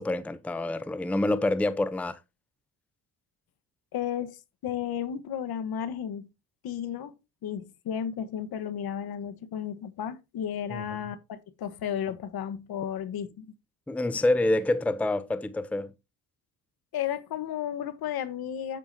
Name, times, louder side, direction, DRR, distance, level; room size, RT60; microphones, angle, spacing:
voice 1, 0.0-2.2 10.7-10.8 13.9-15.9, left 2 dB, 5° left, 0.6 m, -27 dB
voice 2, 3.9-4.4 4.6-6.3 6.6-7.1 7.4-13.5 16.9-18.8, left 9 dB, 65° left, 1.4 m, -33 dB
8.7 x 8.3 x 2.8 m
cardioid pair, 95°, 40 cm